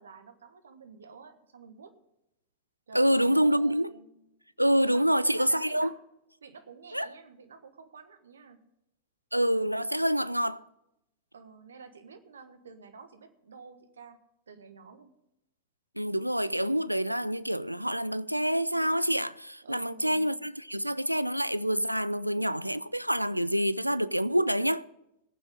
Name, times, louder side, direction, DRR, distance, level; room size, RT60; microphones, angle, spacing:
voice 1, 0.0-2.0 2.9-4.2 4.8-6.0 6.4-8.7 11.3-14.2 14.5-15.1 19.6-20.5, right 5 dB, 70° right, 1.4 m, -49 dB
voice 2, 2.9-3.9 4.6-5.9 6.9-7.1 9.3-10.6 16.0-24.9, equal, 90° right, 0.4 m, -27 dB
20.0 x 9.0 x 3.7 m
figure-of-eight pair, 90°, 0 cm